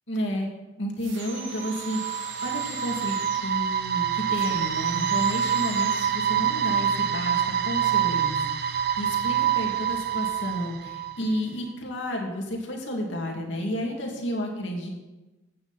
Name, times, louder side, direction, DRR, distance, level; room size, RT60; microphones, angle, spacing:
voice 1, 0.1-0.5 0.8-14.9, equal, 65° left, 0 dB, 2.7 m, -31 dB
sound 1, 1.0-3.6 4.3-6.3, right 5 dB, 75° right, 2.2 m, -40 dB
sound 2, 1.3-11.4, right 9 dB, 55° right, 0.8 m, -26 dB
15.0 x 9.6 x 4.3 m, 1.1 s
head